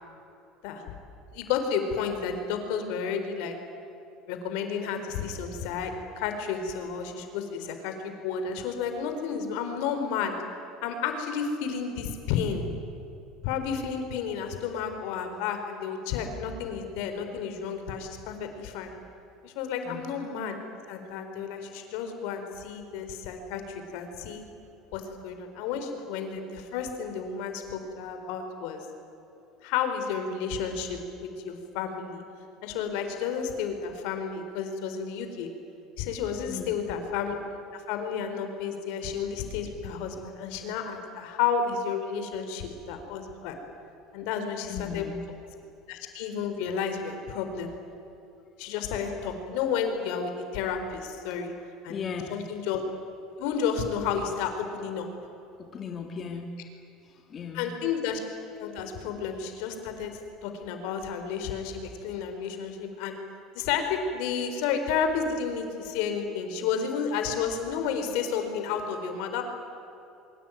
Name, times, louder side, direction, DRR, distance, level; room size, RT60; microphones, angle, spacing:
voice 1, 1.3-3.5 4.3-7.9 8.2-10.3 10.8-12.6 13.4-18.9 19.4-20.6 20.9-24.5 24.9-28.9 29.6-32.2 32.6-35.5 36.0-37.4 37.7-43.6 44.1-45.1 45.9-47.7 48.6-51.5 51.8-52.0 52.3-52.8 53.4-55.1 57.5-58.2 58.6-60.1 60.4-63.2 63.5-69.4, left 6 dB, 75° left, 6 dB, 4.4 m, -31 dB
voice 2, 36.5-36.8 44.7-45.3 51.9-52.4 55.6-56.5 57.1-57.7, left 6 dB, 30° left, 3 dB, 2.2 m, -37 dB
24.0 x 24.0 x 9.3 m, 2.8 s
cardioid pair, 150°, 0 cm